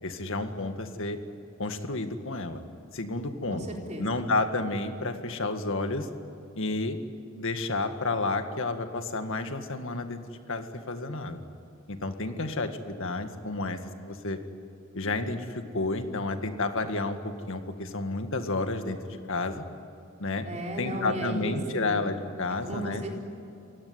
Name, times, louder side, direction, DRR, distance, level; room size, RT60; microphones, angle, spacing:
voice 1, 0.0-1.2 1.6-2.6 2.9-3.6 4.0-6.1 6.5-7.0 7.4-10.2 10.5-11.4 11.9-14.4 14.9-19.6 20.2-20.5 20.8-23.0, left 2 dB, 65° left, 7 dB, 1.9 m, -31 dB
voice 2, 3.5-4.3 20.4-22.0 22.6-23.2, right 1 dB, 35° right, 0 dB, 4.2 m, -35 dB
27.5 x 17.5 x 9.7 m, 2.7 s
head